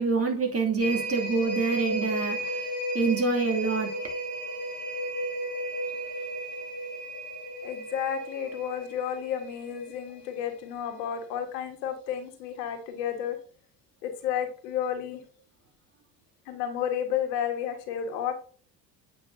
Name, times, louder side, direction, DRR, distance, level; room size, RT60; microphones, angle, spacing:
voice 1, 0.0-2.6 2.9-3.9, right 4 dB, 30° right, 2.5 m, -26 dB
sound 1, 0.8-10.6 11.0-11.1, right 1 dB, 35° left, 1.8 m, -34 dB
voice 2, 7.6-13.4 14.0-15.2 16.5-18.3, left 9 dB, 70° left, 1.6 m, -31 dB
8.6 x 5.4 x 2.7 m
hypercardioid pair, 65°, 50 cm